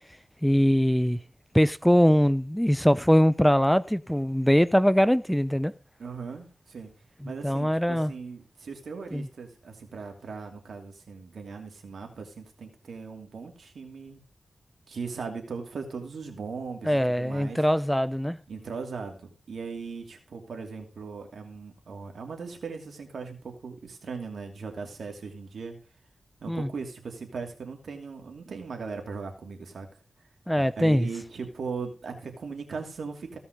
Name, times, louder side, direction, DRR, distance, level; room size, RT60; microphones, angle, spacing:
voice 1, 0.4-1.2 1.5-5.7 7.2-8.1 9.1-9.3 16.9-18.4 26.5-26.7 30.5-31.1, equal, 5° left, 0.5 m, -22 dB
voice 2, 6.0-6.9 7.2-14.2 14.9-17.6 18.5-19.2 19.5-25.8 26.4-29.9 30.8-33.4, right 5 dB, 90° right, 2.7 m, -38 dB
16.0 x 5.7 x 5.2 m
wide cardioid pair, 75°, 0 cm